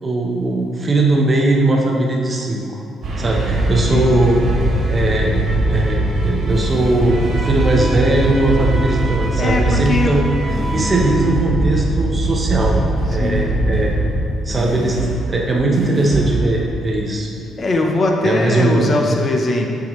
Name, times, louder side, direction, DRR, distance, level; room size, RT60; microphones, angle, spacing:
voice 1, 0.0-2.6 3.2-4.4 4.9-10.3 10.7-12.8 13.1-13.9 14.4-15.0 15.3-17.3 18.2-19.0, right 2 dB, 30° right, -1 dB, 0.8 m, -19 dB
sound 1, 3.0-17.1, right 2 dB, 70° right, 1.5 m, -21 dB
voice 2, 9.4-10.2 13.1-13.5 17.6-19.7, left 2 dB, 40° left, 2 dB, 0.7 m, -20 dB
6.8 x 4.9 x 3.1 m, 2.5 s
cardioid pair, 90°, 0 cm